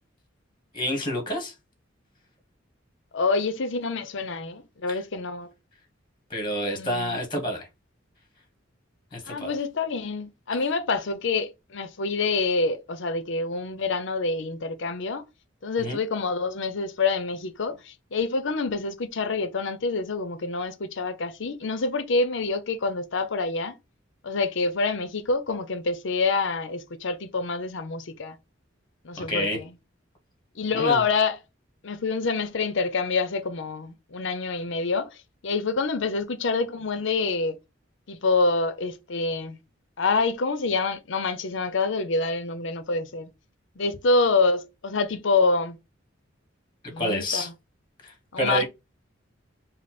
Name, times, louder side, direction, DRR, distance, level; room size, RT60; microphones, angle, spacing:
voice 1, 0.7-1.5 4.9-5.0 6.3-7.7 9.1-9.5 15.8-16.0 29.2-29.6 30.7-31.0 47.0-47.5 48.0-48.6, left 1 dB, 25° left, 1.5 m, -28 dB
voice 2, 3.1-5.5 6.7-7.2 9.3-15.2 15.6-23.8 24.2-28.4 29.0-29.7 30.6-31.4 31.8-35.2 35.4-37.6 38.1-39.6 40.0-43.3 43.8-45.8 46.9-47.5 48.3-48.6, left 3 dB, 70° left, 0.7 m, -26 dB
5.2 x 2.1 x 4.2 m
head